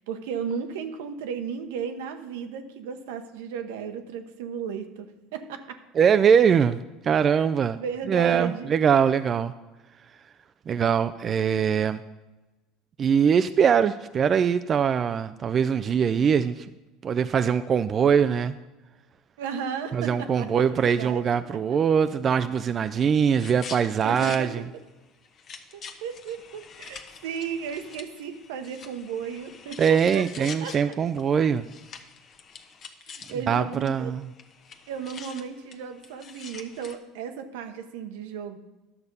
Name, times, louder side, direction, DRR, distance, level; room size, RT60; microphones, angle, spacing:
voice 1, 0.0-5.8 7.7-8.7 19.4-21.2 24.0-24.5 25.7-30.9 33.3-34.1 34.9-38.6, right 7 dB, 80° right, 8 dB, 0.9 m, -34 dB
voice 2, 5.9-6.8 7.0-7.8 8.1-9.5 10.7-12.0 13.0-16.7 17.0-18.6 19.9-24.6 29.8-31.6 33.5-34.3, right 7 dB, 40° right, 11 dB, 0.3 m, -22 dB
sound 1, 23.3-24.4 24.8-24.9 25.2-33.6 33.8-33.9 34.2-37.0, left 6 dB, 45° left, 1.0 m, -45 dB
11.0 x 6.8 x 5.4 m, 1.1 s
supercardioid pair, 90°, 0 cm